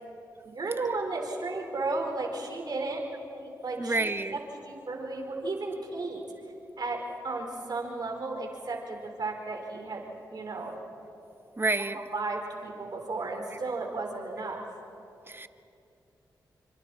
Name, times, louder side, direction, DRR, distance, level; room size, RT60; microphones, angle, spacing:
voice 1, 0.4-3.0 3.3-6.2 6.8-10.8 11.9-14.6, right 3 dB, 55° right, 1 dB, 4.8 m, -34 dB
voice 2, 3.8-4.4 11.6-12.0 15.3-15.5, right 2 dB, 25° right, 10 dB, 1.2 m, -28 dB
28.0 x 25.5 x 4.4 m, 2.7 s
supercardioid pair, 40°, 8 cm